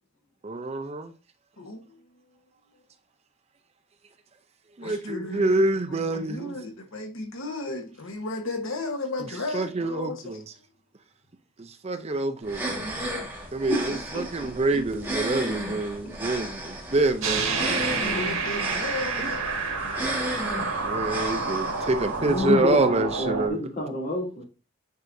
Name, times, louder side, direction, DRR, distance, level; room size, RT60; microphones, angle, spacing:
voice 1, 0.4-1.1 4.8-6.5 9.5-10.4 11.8-12.8 13.5-13.8 14.1-17.6 19.2-19.3 20.8-23.6, right 2 dB, 30° right, 0.5 m, -26 dB
voice 2, 1.6-2.0 4.8-5.5 5.9-10.4 17.3-19.5, left 2 dB, 70° left, 1.1 m, -35 dB
sound 1, 12.4-22.4, right 1 dB, 10° right, 1.5 m, -34 dB
voice 3, 13.7-15.1 15.4-16.1 22.2-24.5, left 1 dB, 40° left, 2.6 m, -30 dB
sound 2, 17.2-23.5, right 4 dB, 70° right, 1.9 m, -29 dB
9.3 x 4.6 x 2.6 m
head